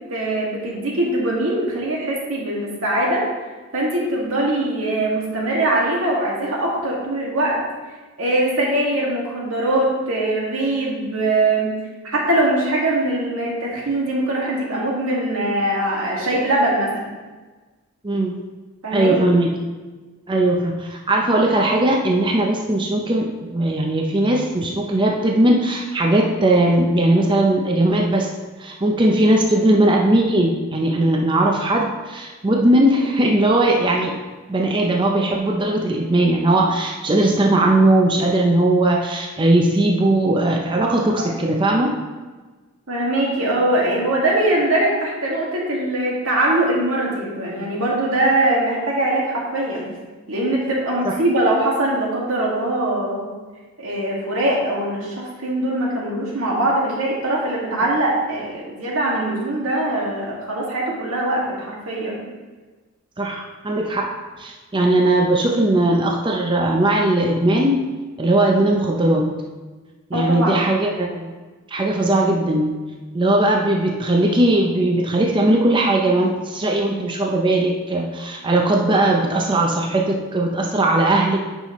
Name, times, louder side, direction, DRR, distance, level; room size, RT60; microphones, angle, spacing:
voice 1, 0.1-3.3 3.7-7.6 8.2-11.7 12.0-17.1 18.8-19.2 42.9-49.9 50.3-53.3 53.8-62.2 70.1-70.6, right 1 dB, 80° right, -3 dB, 2.0 m, -22 dB
voice 2, 18.0-18.4 18.9-19.5 20.3-28.3 28.6-34.1 34.5-41.9 51.0-51.1 63.2-64.1 64.4-67.8 68.2-69.3 70.1-71.3 71.7-72.7 73.1-81.4, right 1 dB, 25° right, 0 dB, 0.5 m, -18 dB
9.2 x 5.8 x 3.0 m, 1.3 s
head